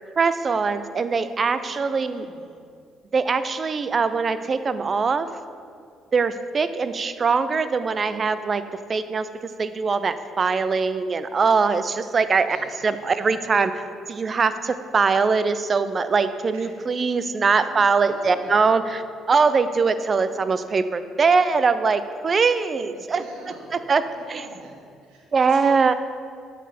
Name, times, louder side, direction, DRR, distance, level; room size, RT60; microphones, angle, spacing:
voice 1, 0.2-2.3 3.1-5.3 6.1-8.6 8.9-12.6 12.8-19.0 19.3-23.2 23.7-24.0 24.3-24.4 25.3-25.9, right 4 dB, 40° right, 12 dB, 0.3 m, -22 dB
voice 2, 1.6-2.5 12.4-12.6 13.0-13.4 16.5-16.7 17.6-18.7 22.9-23.8 24.2-24.7 25.0-25.8, right 2 dB, 85° right, -2 dB, 1.1 m, -45 dB
7.3 x 4.0 x 4.2 m, 2.3 s
hypercardioid pair, 60°, 0 cm